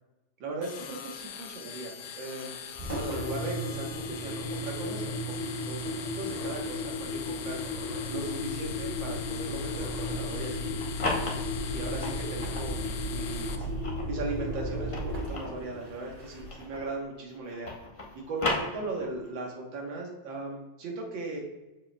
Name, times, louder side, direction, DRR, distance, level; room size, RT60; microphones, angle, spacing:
voice 1, 0.4-2.6 2.9-5.0 5.3-7.6 8.1-10.8 11.2-13.7 14.1-17.7 18.2-21.4, right 2 dB, 70° right, 0 dB, 2.0 m, -38 dB
sound 1, 0.6-13.6, left 8 dB, 75° left, 1.1 m, -42 dB
Engine, 2.7-16.7, left 1 dB, 35° right, 0.6 m, -34 dB
sound 2, 10.6-12.7 13.3-17.0 17.3-19.3, left 2 dB, 50° left, 0.3 m, -36 dB
7.3 x 6.9 x 2.2 m, 1.1 s
omnidirectional pair, 2.1 m